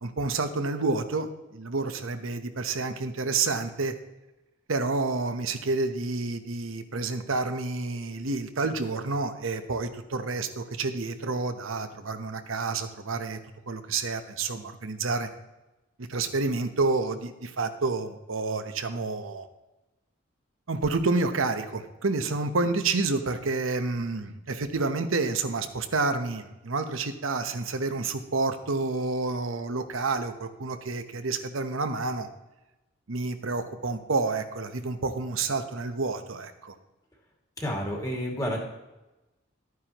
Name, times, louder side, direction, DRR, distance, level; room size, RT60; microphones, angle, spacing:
voice 1, 0.0-3.9 4.7-13.4 13.7-15.3 16.0-19.5 20.7-32.3 33.1-36.7, right 3 dB, 90° right, 8 dB, 0.9 m, -29 dB
voice 2, 37.6-38.6, equal, 15° left, -1 dB, 2.3 m, -30 dB
13.0 x 9.5 x 3.0 m, 1.0 s
head